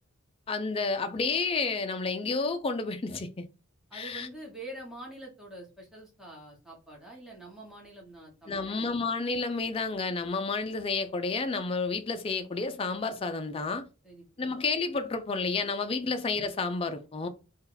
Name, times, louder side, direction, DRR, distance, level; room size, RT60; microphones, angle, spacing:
voice 1, 0.5-3.5 3.9-4.3 8.5-13.9 14.4-17.3, left 4 dB, 25° left, 0.4 m, -30 dB
voice 2, 3.9-8.8 14.0-14.5 16.0-16.1, right 1 dB, 5° right, 1.0 m, -46 dB
2.7 x 2.3 x 3.8 m
head